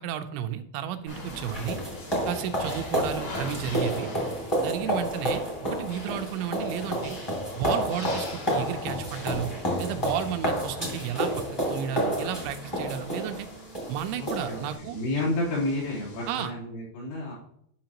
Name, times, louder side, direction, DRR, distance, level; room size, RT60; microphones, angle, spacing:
voice 1, 0.0-1.8 2.3-4.1 4.6-7.2 7.5-9.5 9.8-13.5 13.9-15.0 16.3-16.5, right 9 dB, 85° right, 8 dB, 2.9 m, -33 dB
sound 1, 1.1-16.4, left 1 dB, 50° left, 1.6 m, -44 dB
sound 2, 1.1-14.8, equal, 15° left, 0.9 m, -30 dB
voice 2, 14.2-17.3, left 1 dB, 85° left, -7 dB, 6.0 m, -31 dB
11.5 x 5.7 x 2.9 m, 0.69 s
omnidirectional pair, 5.2 m